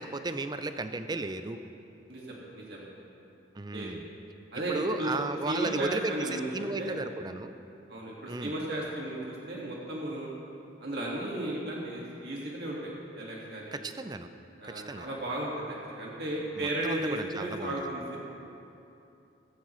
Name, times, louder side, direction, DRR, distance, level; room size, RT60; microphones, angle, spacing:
voice 1, 0.0-1.6 3.6-4.1 4.7-7.5 8.3-8.5 13.7-14.3 14.7-15.1 16.6-17.7, right 2 dB, 20° right, 9 dB, 0.5 m, -34 dB
voice 2, 2.1-2.9 3.7-3.9 4.5-5.1 5.5-6.5 6.8-7.0 7.9-10.3 10.8-13.8 14.6-18.2, right 1 dB, 60° right, -4 dB, 1.9 m, -35 dB
16.0 x 15.0 x 3.1 m, 2.8 s
head